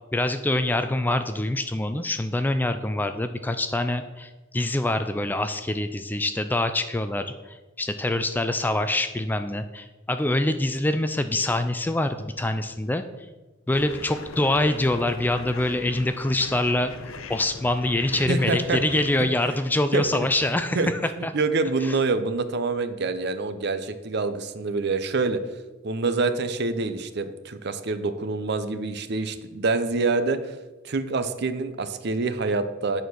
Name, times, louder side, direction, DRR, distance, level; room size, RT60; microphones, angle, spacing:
voice 1, 0.1-13.0 13.7-16.9 17.3-20.8 21.2-21.3 21.8-22.0, left 1 dB, 10° left, 9 dB, 0.3 m, -25 dB
sound 1, 13.7-19.1, left 4 dB, 80° left, 0.7 m, -41 dB
voice 2, 18.1-18.8 19.2-19.3 19.9-20.3 20.7-20.9 21.2-25.4 25.8-30.5 30.8-33.0, right 3 dB, 55° right, 11 dB, 0.6 m, -26 dB
9.3 x 4.3 x 6.2 m, 1.2 s
head